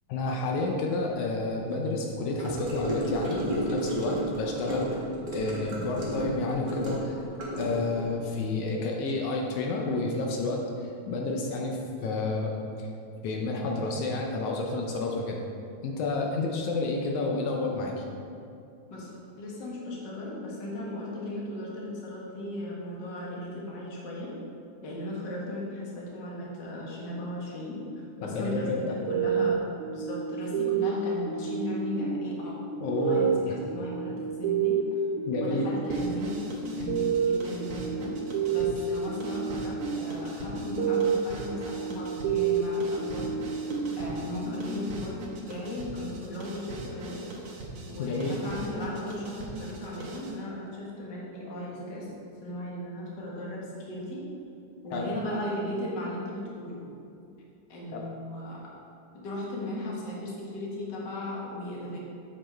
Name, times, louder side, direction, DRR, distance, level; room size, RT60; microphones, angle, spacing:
voice 1, 0.1-5.0 5.3-7.2 7.6-12.9 13.2-15.4 15.8-18.0 28.2-29.0 32.8-33.6 35.3-35.7 48.0-48.4 54.9-55.1 57.9-58.1, left 3 dB, 80° left, 0 dB, 2.1 m, -30 dB
Gurgling / Car passing by / Sink (filling or washing), 2.4-8.1, right 1 dB, 25° right, 1.1 m, -32 dB
voice 2, 18.9-24.3 24.8-27.8 28.2-29.7 29.9-32.5 33.0-34.8 35.4-38.2 38.5-43.3 44.0-47.2 47.9-52.1 52.4-54.2 54.8-56.8 57.7-58.6 59.1-62.0, left 1 dB, 45° left, -4 dB, 1.9 m, -36 dB
sound 1, 29.1-45.4, right 5 dB, 85° right, 2.2 m, -30 dB
sound 2, 35.9-50.4, right 2 dB, 55° right, 1.8 m, -42 dB
7.8 x 6.8 x 4.4 m, 2.6 s
omnidirectional pair, 3.4 m